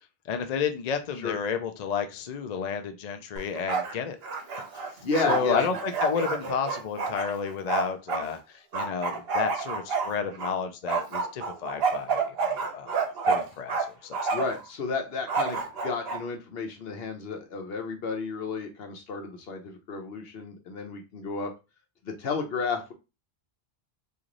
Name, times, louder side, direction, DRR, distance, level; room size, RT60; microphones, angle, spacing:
voice 1, 0.3-4.2 4.7-4.9 5.2-12.9 13.2-13.8 14.0-14.2, left 6 dB, 50° left, 7 dB, 0.5 m, -31 dB
Bark, 3.4-3.9 4.2-8.2 8.7-10.5 10.9-13.8 14.1-14.6 15.3-16.2, right 4 dB, 70° right, 1.0 m, -29 dB
voice 2, 5.0-5.7 14.3-21.5 22.0-22.9, left 4 dB, 70° left, 4 dB, 1.0 m, -32 dB
3.1 x 2.5 x 3.8 m, 0.28 s
omnidirectional pair, 1.1 m